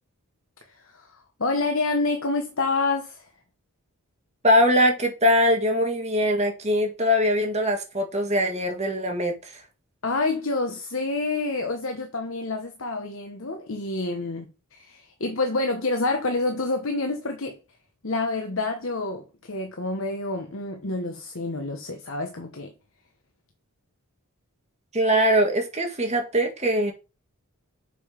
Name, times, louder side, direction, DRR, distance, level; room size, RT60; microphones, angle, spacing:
voice 1, 0.7-3.3 10.0-17.6 18.0-22.7, left 3 dB, 60° left, 1.0 m, -28 dB
voice 2, 4.4-9.6 24.9-26.9, equal, 30° right, 1.8 m, -22 dB
6.8 x 5.3 x 5.1 m
head